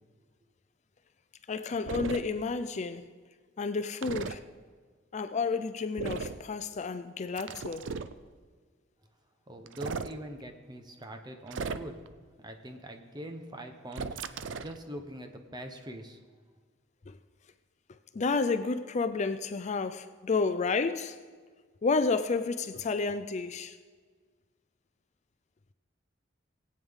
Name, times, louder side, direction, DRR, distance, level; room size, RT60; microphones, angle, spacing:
voice 1, 1.5-3.1 3.6-4.4 5.1-7.9 17.1-17.2 18.1-21.2 21.8-23.8, left 4 dB, 35° left, 0.4 m, -31 dB
sound 1, 1.9-2.2 4.0-4.4 6.0-6.4 7.4-8.1 9.7-10.1 11.5-12.1 13.9-14.8, right 5 dB, 70° right, 0.5 m, -36 dB
voice 2, 9.5-12.0 12.4-14.3 14.6-16.2, right 1 dB, 20° right, 0.9 m, -43 dB
19.5 x 8.7 x 3.6 m
head